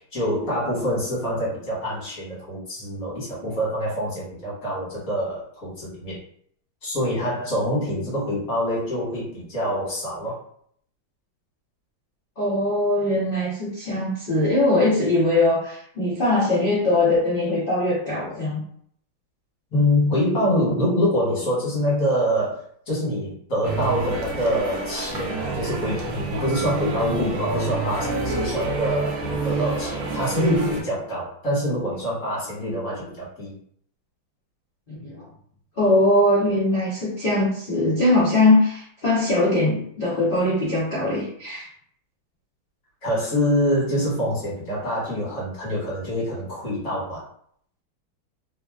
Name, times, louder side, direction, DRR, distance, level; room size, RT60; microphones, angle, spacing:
voice 1, 0.0-6.2 6.8-10.4 19.7-33.6 43.0-47.2, equal, 45° left, -7 dB, 1.7 m, -25 dB
voice 2, 12.4-18.6 34.9-35.3 35.8-41.7, left 2 dB, 90° left, -9 dB, 0.4 m, -21 dB
sound 1, 23.6-30.8, right 3 dB, 80° right, 0.8 m, -28 dB
3.3 x 2.4 x 2.3 m, 0.64 s
omnidirectional pair, 2.3 m